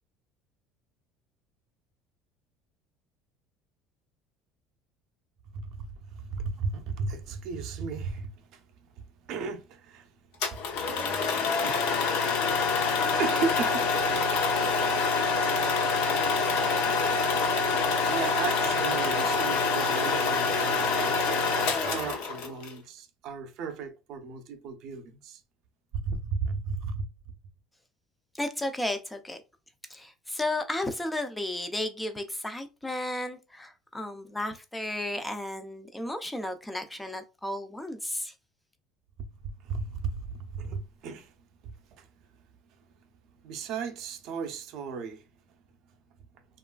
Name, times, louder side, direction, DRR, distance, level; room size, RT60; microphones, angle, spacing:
voice 1, 5.5-8.6 8.9-10.2 10.5-10.6 11.6-13.9 14.3-14.5 15.5-15.9 18.1-21.3 21.8-25.4 25.9-27.3 39.2-41.3 41.6-42.1 43.4-45.3, right 5 dB, 50° right, 0.5 m, -36 dB
sound 1, 10.4-22.7, left 4 dB, 70° left, 0.7 m, -26 dB
voice 2, 28.3-29.4 29.9-38.3, left 1 dB, 5° left, 0.3 m, -33 dB
3.0 x 2.3 x 2.2 m
cardioid pair, 170°, 0 cm